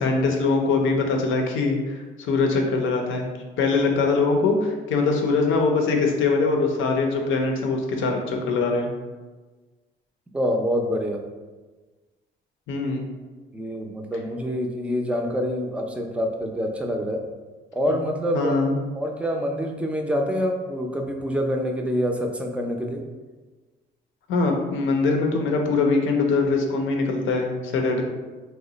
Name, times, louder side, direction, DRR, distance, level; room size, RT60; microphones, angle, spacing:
voice 1, 0.0-3.3 3.6-8.9 12.7-13.0 17.9-18.0 18.3-18.8 24.3-28.0, left 3 dB, 80° left, 2 dB, 0.6 m, -22 dB
voice 2, 10.3-11.2 13.5-17.2 17.7-18.7 18.9-23.0, equal, 5° right, 2 dB, 0.4 m, -26 dB
3.0 x 2.1 x 3.8 m, 1.3 s
cardioid pair, 90°, 20 cm